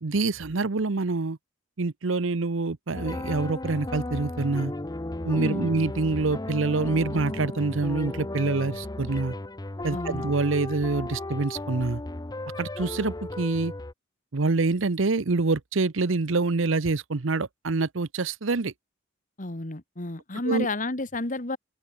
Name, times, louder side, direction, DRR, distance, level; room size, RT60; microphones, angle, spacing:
voice 1, 0.0-1.4 1.8-4.7 5.2-9.3 9.8-12.0 12.6-13.7 14.3-18.7 20.4-20.7, right 3 dB, 70° right, 0.8 m, -26 dB
sound 1, 2.9-13.9, left 1 dB, 20° left, 0.8 m, -34 dB
voice 2, 5.4-5.7 9.9-10.2 19.4-21.6, left 2 dB, 40° left, 2.0 m, -31 dB
open air
head